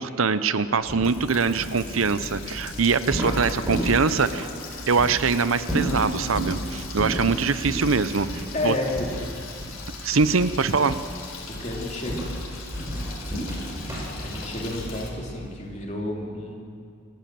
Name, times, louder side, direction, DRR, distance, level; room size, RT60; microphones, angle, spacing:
voice 1, 0.0-4.5 4.9-8.7 10.0-11.0, right 4 dB, 80° right, 13 dB, 0.8 m, -23 dB
Water tap faucet, 0.6-15.1, left 5 dB, 90° left, 3.6 m, -41 dB
sound 1, 0.9-4.5 5.0-5.2 5.6-6.6 7.0-7.3 7.6-7.9 8.3-8.5 8.9-9.9 10.2-10.5 10.9-11.2 11.5-15.5, right 1 dB, 15° right, 5.4 m, -31 dB
voice 2, 8.5-9.3 11.5-12.2 14.2-16.6, left 1 dB, 35° left, 0 dB, 3.2 m, -30 dB
27.5 x 15.0 x 7.6 m, 2.3 s
head